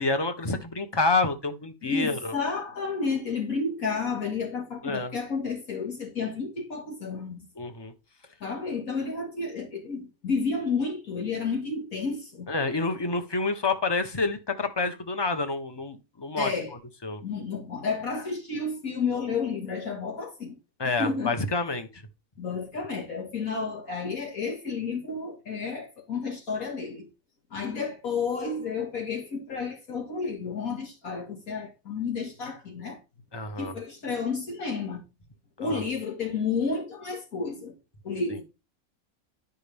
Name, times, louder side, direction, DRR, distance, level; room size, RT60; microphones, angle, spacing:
voice 1, 0.0-2.4 4.8-5.1 7.6-7.9 12.5-16.5 17.0-17.2 20.8-22.0 33.3-33.7 35.6-35.8, left 3 dB, 20° left, 1.0 m, -28 dB
voice 2, 1.8-7.5 8.4-12.5 16.4-16.7 17.2-20.6 21.0-21.3 22.4-27.1 27.5-33.0 33.6-35.0 35.6-37.8 38.0-38.4, left 4 dB, 70° left, 2.3 m, -31 dB
11.5 x 5.3 x 3.5 m
omnidirectional pair, 1.6 m